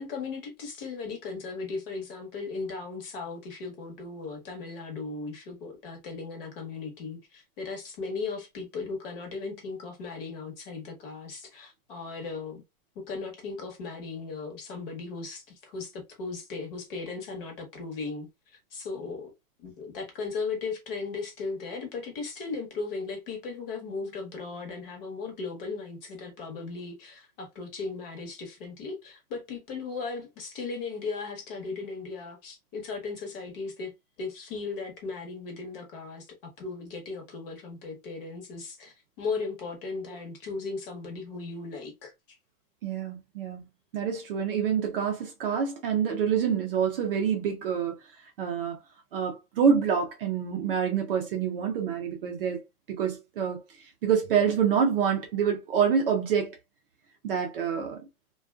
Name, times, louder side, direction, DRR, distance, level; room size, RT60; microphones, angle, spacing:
voice 1, 0.0-12.6 12.9-18.3 18.7-19.3 19.6-33.9 34.2-42.4, left 4 dB, 40° left, 1.0 m, -37 dB
voice 2, 42.8-43.6 43.9-48.0 48.4-48.8 49.1-53.6 54.0-56.6 57.2-58.0, right 7 dB, 40° right, 0.5 m, -27 dB
2.4 x 2.3 x 2.3 m
hypercardioid pair, 150°, 44 cm